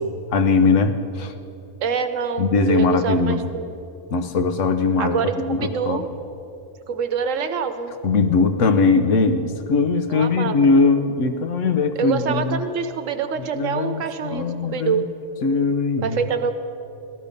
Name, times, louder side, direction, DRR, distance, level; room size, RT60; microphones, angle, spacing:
voice 1, 0.3-1.3 2.4-3.5 4.1-6.0 8.0-12.6 13.5-15.0 15.4-16.2, left 4 dB, 70° left, 8 dB, 1.2 m, -20 dB
voice 2, 1.8-3.7 5.0-6.1 6.9-7.9 10.1-10.7 12.0-15.1 16.0-16.6, right 6 dB, 75° right, 8 dB, 1.2 m, -25 dB
15.5 x 12.0 x 5.2 m, 2.8 s
omnidirectional pair, 1.3 m